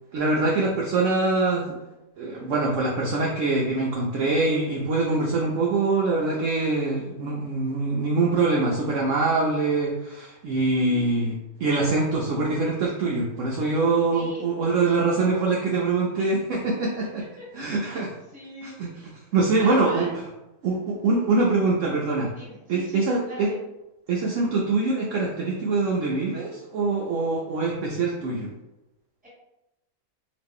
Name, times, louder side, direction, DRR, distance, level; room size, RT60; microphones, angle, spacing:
voice 1, 0.1-1.8 2.2-17.2 17.5-18.1 18.6-18.9 19.3-20.1 20.6-22.3 22.7-23.5 24.1-28.5, right 3 dB, 70° right, -2 dB, 0.8 m, -24 dB
voice 2, 14.1-14.4 16.1-16.3 17.4-18.0 18.3-19.1 19.6-20.1 22.3-23.6 29.2-29.3, left 1 dB, 5° right, -7 dB, 1.2 m, -41 dB
3.0 x 2.4 x 3.5 m, 0.95 s
omnidirectional pair, 1.6 m